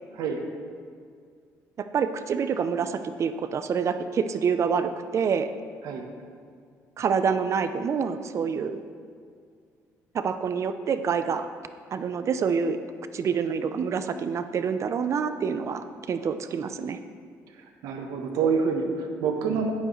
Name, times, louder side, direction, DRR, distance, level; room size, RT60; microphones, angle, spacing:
voice 1, 1.8-5.5 7.0-8.8 10.1-11.5 11.9-12.8 13.1-17.0, right 6 dB, 50° right, 10 dB, 0.6 m, -27 dB
voice 2, 17.8-19.7, right 5 dB, 80° right, 4 dB, 1.1 m, -27 dB
11.5 x 8.7 x 3.2 m, 2.1 s
cardioid pair, 85°, 6 cm